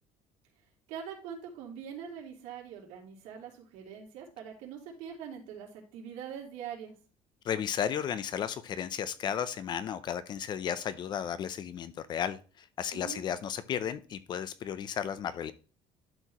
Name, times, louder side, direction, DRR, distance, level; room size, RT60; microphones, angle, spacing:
voice 1, 0.9-6.9 12.9-13.2, right 8 dB, 75° right, -1 dB, 3.1 m, -43 dB
voice 2, 7.4-15.5, left 8 dB, 35° left, 14 dB, 0.5 m, -34 dB
11.5 x 4.6 x 2.9 m, 0.36 s
cardioid pair, 160°, 13 cm